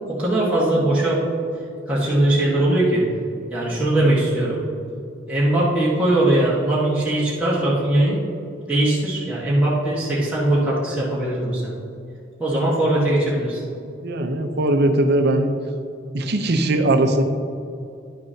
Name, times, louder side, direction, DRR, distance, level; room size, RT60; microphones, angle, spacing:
voice 1, 0.1-1.2 1.9-3.0 3.5-4.6 5.3-8.2 8.7-11.7 12.4-13.6, right 1 dB, 5° right, -9 dB, 1.4 m, -20 dB
voice 2, 14.0-15.5 16.1-17.2, right 1 dB, 55° right, 6 dB, 0.7 m, -19 dB
10.5 x 6.8 x 2.8 m, 2.5 s
head